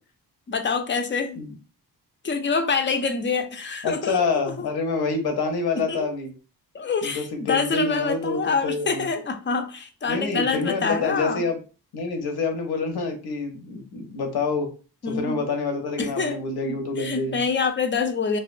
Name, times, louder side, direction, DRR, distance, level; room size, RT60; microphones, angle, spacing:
voice 1, 0.5-1.4 2.2-4.7 5.8-6.1 6.7-11.5 15.0-15.4 16.0-16.4 16.7-18.4, left 5 dB, 30° left, 7 dB, 0.4 m, -26 dB
voice 2, 3.8-6.3 7.0-9.1 10.1-11.6 11.9-14.7 15.1-17.4, left 4 dB, 75° left, 5 dB, 0.7 m, -27 dB
2.4 x 2.2 x 2.4 m, 0.34 s
cardioid pair, 95°, 38 cm